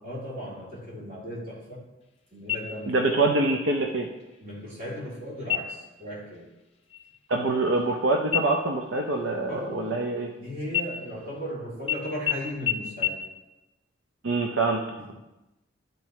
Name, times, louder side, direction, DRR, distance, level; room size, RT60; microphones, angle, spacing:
voice 1, 0.0-1.8 2.3-3.0 4.4-6.5 9.5-10.1 10.3-13.2 15.0-15.1, equal, 50° right, -7 dB, 2.8 m, -36 dB
sound 1, 2.5-3.1 3.5-3.6 4.2-4.7 5.4-5.9 6.3-6.6 6.9-8.0 8.3-10.3 10.7-11.5 11.9-12.0 12.3-12.4 12.7-12.8 13.0-13.1, left 10 dB, 30° left, 0.6 m, -31 dB
voice 2, 2.9-4.1 7.3-10.3 14.2-14.8, right 2 dB, 90° right, 2 dB, 0.6 m, -25 dB
12.0 x 4.5 x 3.1 m, 1.0 s
head